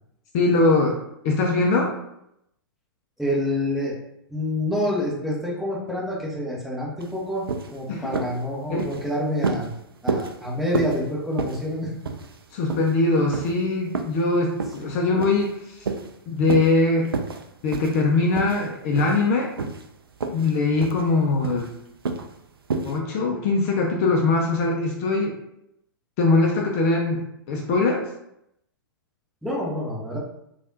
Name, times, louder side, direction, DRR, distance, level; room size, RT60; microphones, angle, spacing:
voice 1, 0.3-1.0 1.2-2.0 7.9-8.1 8.7-8.9 12.5-15.9 16.3-17.1 17.6-19.5 20.3-21.7 22.8-25.4 26.2-28.1, left 3 dB, 40° left, 0 dB, 0.5 m, -22 dB
voice 2, 3.2-4.0 4.3-7.4 7.7-9.7 10.0-11.9 14.8-15.0 29.4-30.2, left 1 dB, ahead, -6 dB, 0.9 m, -27 dB
sound 1, 7.0-7.1 7.5-7.7 8.1-8.4 8.7-9.0 9.4-9.7 10.1-10.3 10.7-11.0 11.4-11.6 12.0-12.4 12.7-12.9 13.3-13.5 13.9-14.2 14.6-14.8 15.2-15.5 15.8-16.1 16.5-16.7 17.1-17.4 17.7-18.0 18.3-18.6 18.9-19.2 19.6-19.9 20.2-20.5 20.8-21.0 21.4-21.7 22.0-22.3 22.7-23.0, right 4 dB, 80° right, 0.4 m, -29 dB
3.3 x 2.3 x 2.7 m, 0.79 s
figure-of-eight pair, 110°, 12 cm